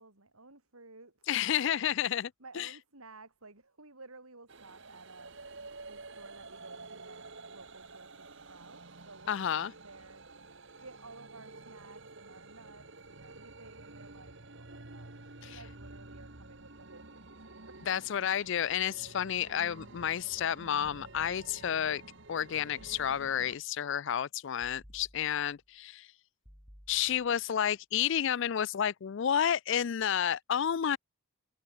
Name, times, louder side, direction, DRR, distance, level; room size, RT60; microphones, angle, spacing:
voice 1, 0.0-1.3 1.6-1.9 2.4-5.4 5.9-10.3 10.8-17.9, right 3 dB, 80° right, 6.0 m, -54 dB
voice 2, 1.3-2.3 2.6-2.7 9.3-9.7 15.4-15.6 17.9-22.0 22.3-26.1 26.9-31.0, left 9 dB, 55° left, 0.4 m, -31 dB
sound 1, 4.5-23.6, right 3 dB, 55° right, 2.1 m, -50 dB
sound 2, 20.8-21.9 22.8-23.7 24.6-25.7 26.4-27.5, equal, ahead, 4.1 m, -58 dB
head